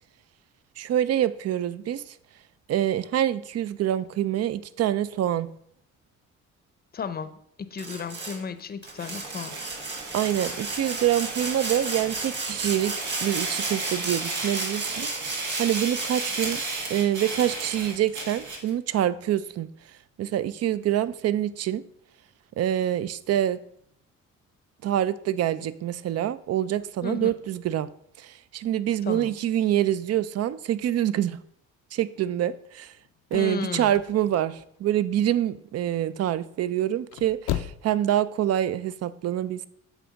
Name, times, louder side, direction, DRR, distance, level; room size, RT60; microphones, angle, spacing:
voice 1, 0.8-2.1 2.7-5.5 10.1-13.0 13.2-15.1 15.6-16.6 16.9-19.7 20.2-21.8 22.6-23.6 24.8-27.9 28.2-31.4 31.9-32.9 33.3-39.7, right 11 dB, 55° right, 16 dB, 0.5 m, -26 dB
voice 2, 6.9-9.6 27.0-27.3 29.1-29.3 33.3-34.0, left 6 dB, 30° left, 12 dB, 0.6 m, -34 dB
Sawing, 7.8-8.4 8.8-16.5, right 3 dB, 35° right, 2.0 m, -34 dB
sound 1, 8.9-18.7, right 3 dB, 85° right, 1.8 m, -34 dB
sound 2, 33.0-35.2 35.6-36.1 36.9-38.0 38.3-38.4, left 12 dB, 80° left, 0.5 m, -34 dB
8.3 x 3.5 x 5.1 m, 0.68 s
cardioid pair, 90°, 30 cm